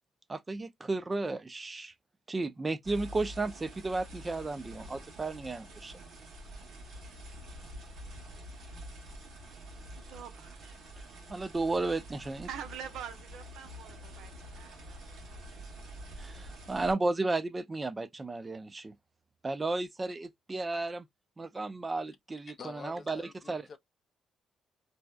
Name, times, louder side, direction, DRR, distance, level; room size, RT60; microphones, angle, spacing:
voice 1, 0.3-1.9 2.3-6.0 11.3-12.5 16.2-18.9 19.4-21.0 21.4-23.2 23.5-23.6, right 3 dB, 25° right, 0.4 m, -33 dB
sound 1, 2.8-16.9, equal, 65° right, 1.1 m, -47 dB
voice 2, 9.9-10.8 12.4-15.4, right 8 dB, 85° right, 0.6 m, -45 dB
voice 3, 22.6-23.8, left 5 dB, 45° left, 0.4 m, -47 dB
2.7 x 2.1 x 2.2 m
cardioid pair, 90°, 0 cm